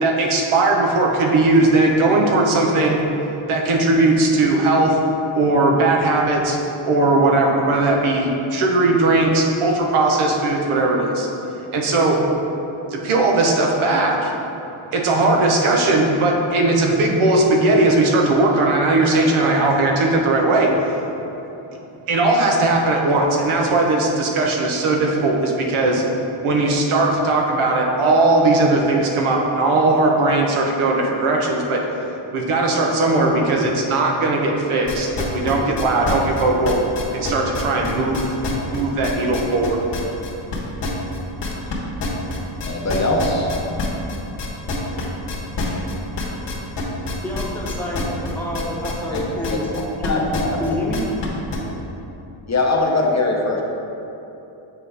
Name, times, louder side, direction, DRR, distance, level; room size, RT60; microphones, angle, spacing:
voice 1, 0.0-3.0 3.5-5.0 5.3-6.6 6.8-11.3 11.7-12.2 12.9-14.3 14.9-21.0 22.1-26.0 26.4-31.8 32.3-36.8 37.1-38.3 38.7-39.8, right 2 dB, 75° right, 0 dB, 0.9 m, -18 dB
sound 1, 34.9-41.7 42.0-51.6, left 2 dB, 60° left, 1.3 m, -26 dB
voice 2, 42.6-43.5 49.1-49.6 50.1-50.6 52.5-53.6, left 2 dB, 35° left, 0 dB, 0.8 m, -21 dB
voice 3, 47.2-49.7 50.0-50.3 50.6-51.0, left 1 dB, 5° left, -4 dB, 1.0 m, -27 dB
7.2 x 4.1 x 3.4 m, 3.0 s
cardioid pair, 90°, 49 cm